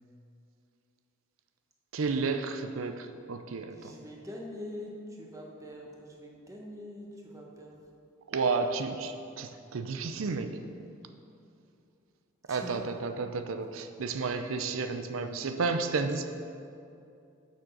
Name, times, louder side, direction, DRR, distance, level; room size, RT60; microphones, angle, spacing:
voice 1, 1.9-4.0 8.3-10.6 12.5-16.3, right 4 dB, 90° right, 8 dB, 0.5 m, -32 dB
voice 2, 3.7-7.8 12.5-12.9, left 1 dB, 15° right, -1 dB, 1.1 m, -44 dB
7.3 x 6.3 x 6.4 m, 2.6 s
head